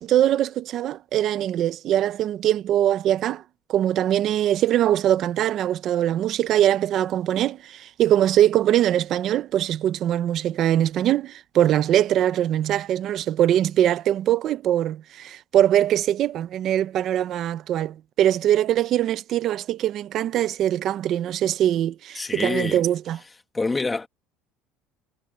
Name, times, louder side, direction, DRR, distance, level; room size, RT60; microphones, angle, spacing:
voice 1, 0.0-3.4 3.7-23.2, right 11 dB, 40° right, 0.8 m, -22 dB
voice 2, 22.2-22.8 23.5-24.1, left 3 dB, 10° left, 1.9 m, -26 dB
cardioid pair, 165°, 0 cm